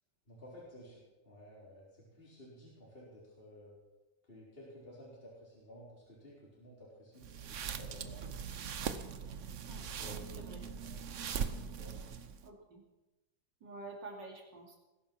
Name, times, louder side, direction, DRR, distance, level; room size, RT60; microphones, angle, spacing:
voice 1, 0.3-3.7 4.3-8.5 9.8-10.5 10.8-11.3 11.8-12.0, left 1 dB, 30° left, -5 dB, 4.0 m, -54 dB
sound 1, 7.2-12.5, right 7 dB, 50° right, 1.0 m, -41 dB
voice 2, 12.4-12.8 13.6-14.8, right 3 dB, 70° right, 0 dB, 3.4 m, -48 dB
19.5 x 10.5 x 6.0 m, 1.1 s
omnidirectional pair, 2.0 m